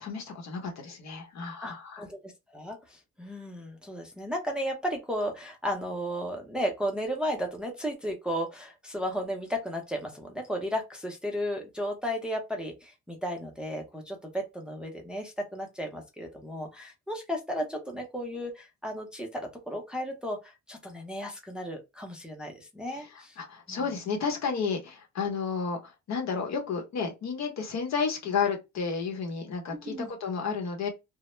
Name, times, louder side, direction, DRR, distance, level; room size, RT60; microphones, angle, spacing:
voice 1, 0.0-2.0 22.9-30.9, left 5 dB, 65° left, 0.9 m, -32 dB
voice 2, 1.6-23.4 23.7-23.8 29.8-30.1, equal, 5° right, 0.5 m, -34 dB
2.1 x 2.0 x 3.0 m
cardioid pair, 90°, 30 cm